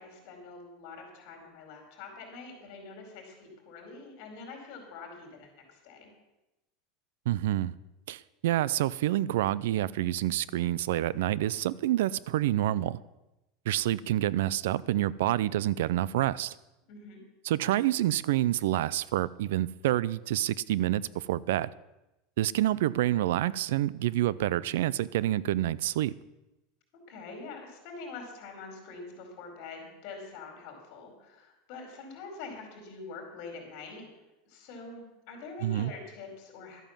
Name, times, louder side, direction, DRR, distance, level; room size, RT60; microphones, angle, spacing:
voice 1, 0.0-6.1 16.9-17.2 27.1-34.1 34.4-36.8, left 4 dB, 50° left, 2 dB, 4.6 m, -45 dB
voice 2, 7.3-7.7 8.1-13.0 13.7-16.5 17.4-21.7 22.4-26.1 35.6-35.9, right 14 dB, 80° right, 21 dB, 0.5 m, -28 dB
12.5 x 9.1 x 7.3 m, 0.97 s
supercardioid pair, 160°, 0 cm